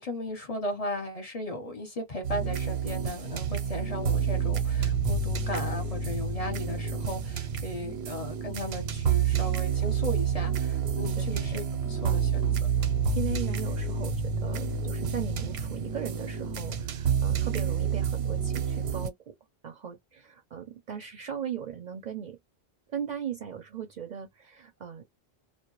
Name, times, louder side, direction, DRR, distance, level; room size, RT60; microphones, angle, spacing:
voice 1, 0.0-12.4, left 1 dB, 40° left, 0.7 m, -36 dB
sound 1, 2.2-19.1, right 6 dB, 85° right, 0.9 m, -29 dB
voice 2, 11.2-11.6 13.1-19.3 19.6-22.4 22.9-25.0, right 9 dB, 55° right, 0.5 m, -38 dB
2.1 x 2.1 x 2.9 m
omnidirectional pair, 1.1 m